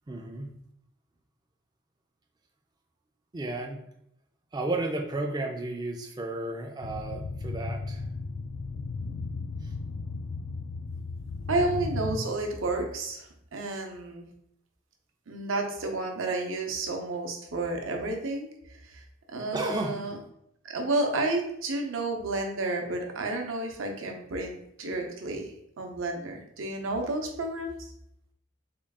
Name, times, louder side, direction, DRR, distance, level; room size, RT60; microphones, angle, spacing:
voice 1, 0.1-0.5 3.3-3.8 4.5-8.0 8.8-8.9 9.6-9.7 19.5-20.0, right 2 dB, 20° right, 3 dB, 0.3 m, -33 dB
sound 1, 6.8-12.2, left 3 dB, 75° left, 0.4 m, -35 dB
voice 2, 11.5-14.2 15.3-18.5 18.8-19.0 19.3-20.2 20.6-25.5 25.8-27.9, right 2 dB, 75° right, 2 dB, 0.6 m, -31 dB
3.7 x 2.3 x 3.4 m, 0.74 s
head